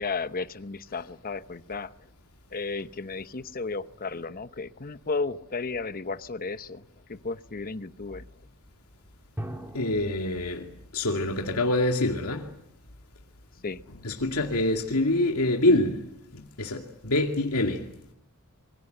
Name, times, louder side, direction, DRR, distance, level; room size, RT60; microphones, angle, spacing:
voice 1, 0.0-2.1 2.5-6.8 7.1-8.3 13.6-13.8, left 4 dB, 40° left, 1.0 m, -34 dB
sound 1, 3.3-4.7 9.4-11.2, right 1 dB, 10° right, 3.0 m, -43 dB
voice 2, 9.7-10.7 10.9-12.5 14.0-16.0 16.3-17.9, left 2 dB, 80° left, 2.3 m, -25 dB
27.0 x 23.5 x 8.0 m
head